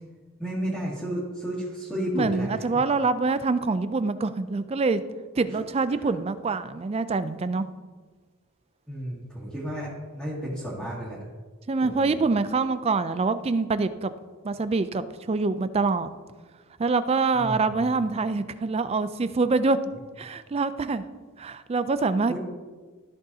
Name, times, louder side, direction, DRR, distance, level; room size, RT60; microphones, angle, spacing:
voice 1, 0.4-2.5 5.9-6.1 8.9-11.2 11.8-12.2 17.4-17.6 22.3-22.4, equal, ahead, -10 dB, 2.0 m, -32 dB
voice 2, 2.1-5.0 5.4-7.7 11.7-14.1 14.4-16.1 16.8-19.8 20.2-21.0 21.4-22.4, right 3 dB, 25° right, 13 dB, 0.3 m, -25 dB
13.5 x 6.4 x 2.8 m, 1.4 s
head